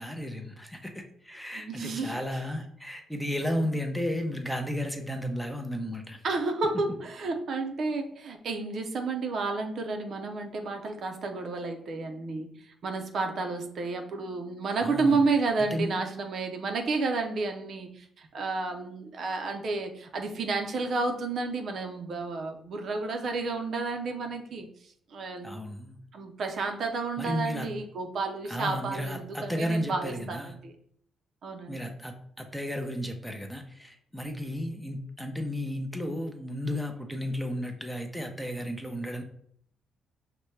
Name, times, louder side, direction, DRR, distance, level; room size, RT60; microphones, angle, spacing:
voice 1, 0.0-6.2 14.8-15.2 15.6-15.9 25.4-26.0 27.2-27.7 28.5-30.6 31.7-39.2, equal, 5° left, 4 dB, 0.6 m, -33 dB
voice 2, 1.5-2.2 6.2-12.5 12.8-24.7 25.1-25.5 26.1-30.7 31.4-31.8, right 3 dB, 60° right, 4 dB, 0.5 m, -31 dB
5.4 x 2.1 x 3.2 m, 0.64 s
cardioid pair, 90°, 0 cm